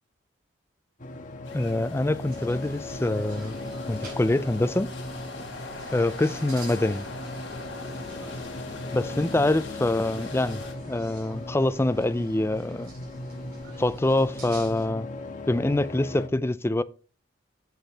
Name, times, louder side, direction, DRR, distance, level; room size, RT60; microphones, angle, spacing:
sound 1, 1.0-16.3, left 2 dB, 45° left, 1.3 m, -38 dB
sound 2, 1.4-10.7, left 3 dB, 75° left, 3.0 m, -42 dB
voice 1, 1.5-3.6 3.9-4.9 5.9-7.0 8.9-12.9 13.8-15.1 15.5-16.8, left 2 dB, 15° left, 0.4 m, -25 dB
sound 3, 2.3-14.9, right 1 dB, 50° right, 5.0 m, -47 dB
9.1 x 7.3 x 3.4 m
head